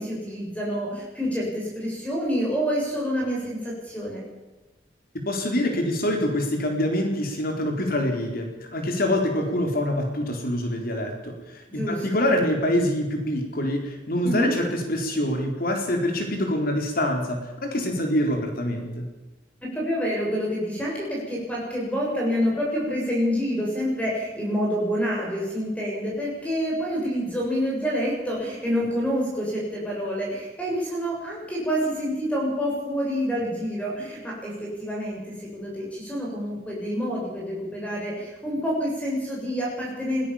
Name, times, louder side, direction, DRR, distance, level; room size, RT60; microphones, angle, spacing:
voice 1, 0.0-4.2 11.7-12.2 14.2-14.5 19.7-40.3, equal, 10° left, -3 dB, 7.3 m, -27 dB
voice 2, 5.3-19.1, left 1 dB, 55° left, 4 dB, 4.2 m, -25 dB
22.0 x 17.0 x 7.3 m, 1.1 s
head